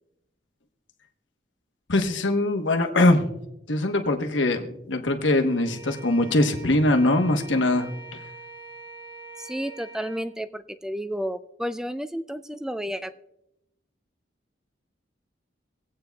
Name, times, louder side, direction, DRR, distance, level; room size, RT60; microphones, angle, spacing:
voice 1, 1.9-3.2 3.7-7.9, left 2 dB, 80° left, 4 dB, 1.1 m, -22 dB
Bowed string instrument, 5.4-10.3, right 3 dB, 30° right, 5.4 m, -44 dB
voice 2, 9.4-13.1, equal, 5° right, 12 dB, 0.3 m, -31 dB
25.5 x 8.6 x 2.3 m, 0.87 s
head